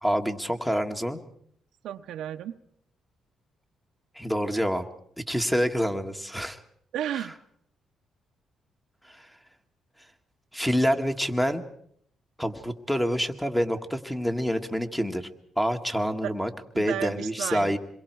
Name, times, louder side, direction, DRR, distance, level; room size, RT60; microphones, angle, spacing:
voice 1, 0.0-1.2 4.2-4.8 5.3-6.6 9.1-9.3 10.5-11.6 12.4-15.3 15.6-16.5 16.8-17.8, equal, 5° left, 6 dB, 1.8 m, -27 dB
voice 2, 1.8-2.5 6.9-7.4 16.2-16.3 16.7-17.7, right 11 dB, 80° right, 6 dB, 0.9 m, -33 dB
27.0 x 22.5 x 4.7 m, 0.66 s
cardioid pair, 90°, 0 cm